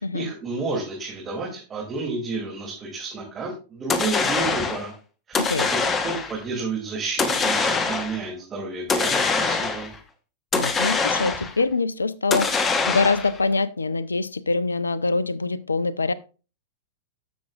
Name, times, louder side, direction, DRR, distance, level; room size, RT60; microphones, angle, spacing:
voice 1, 0.1-4.9 5.3-5.6 6.0-9.9, right 3 dB, 25° right, -3 dB, 2.7 m, -31 dB
sound 1, 3.9-4.9 5.3-6.4 7.2-8.2 8.9-10.0 10.5-11.6 12.3-13.4, left 4 dB, 20° left, 1.0 m, -24 dB
voice 2, 10.5-12.5 12.9-16.1, left 3 dB, 85° left, 19 dB, 0.5 m, -24 dB
13.0 x 6.2 x 2.4 m, 0.34 s
figure-of-eight pair, 100°, 0 cm